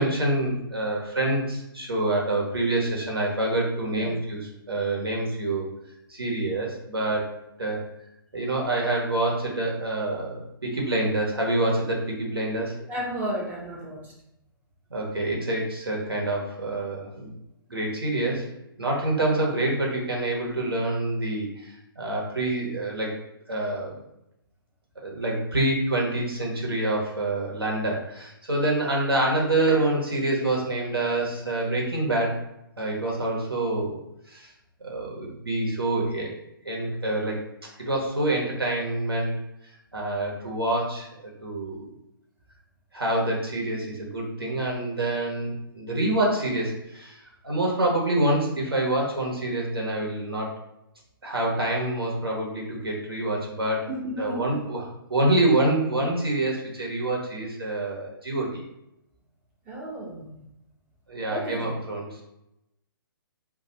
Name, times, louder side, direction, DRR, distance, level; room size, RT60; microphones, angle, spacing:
voice 1, 0.0-4.4 4.7-5.7 6.1-7.3 7.6-7.8 8.3-12.7 14.9-17.3 17.7-18.5 18.8-23.1 23.5-24.0 25.0-32.4 32.8-34.0 34.3-34.5 34.8-36.3 36.6-37.4 37.8-39.3 39.9-41.1 41.4-41.9 42.9-47.2 47.4-50.5 51.2-53.9 54.2-54.8 55.1-58.6 61.1-62.2, right 2 dB, 85° right, -2 dB, 1.1 m, -26 dB
voice 2, 12.8-14.1 53.9-54.6 59.7-60.4 61.3-61.7, right 1 dB, 15° right, -3 dB, 0.5 m, -33 dB
2.5 x 2.3 x 4.0 m, 0.84 s
figure-of-eight pair, 125°, 12 cm